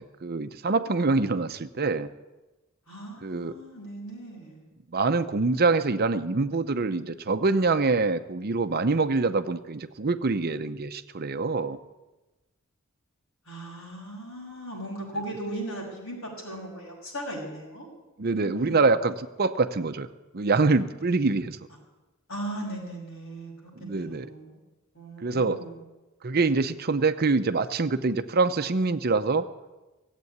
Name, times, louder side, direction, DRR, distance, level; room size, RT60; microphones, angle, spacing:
voice 1, 0.0-2.1 3.2-3.5 4.9-11.8 18.2-20.1 20.3-21.6 23.8-24.3 25.2-25.6 26.2-29.5, right 3 dB, 45° right, 10 dB, 0.7 m, -25 dB
voice 2, 2.9-4.7 13.5-17.9 18.2-18.9 22.3-23.5 23.8-24.6 24.9-25.8, right 1 dB, 70° left, -2 dB, 6.3 m, -38 dB
18.0 x 8.3 x 9.5 m, 1.1 s
head